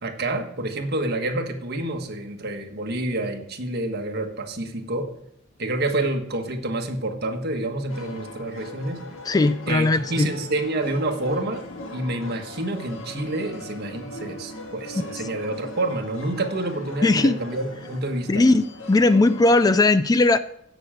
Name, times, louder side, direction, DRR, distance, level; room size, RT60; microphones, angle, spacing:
voice 1, 0.0-5.1 5.6-9.0 9.7-11.6 11.9-18.4, right 2 dB, 55° right, 4 dB, 1.4 m, -28 dB
sound 1, 7.9-19.6, left 1 dB, 85° left, 1.7 m, -39 dB
voice 2, 9.3-10.3 15.0-15.1 17.0-17.4 18.3-20.4, left 2 dB, 20° left, 13 dB, 0.3 m, -18 dB
16.0 x 6.2 x 5.0 m, 0.73 s
head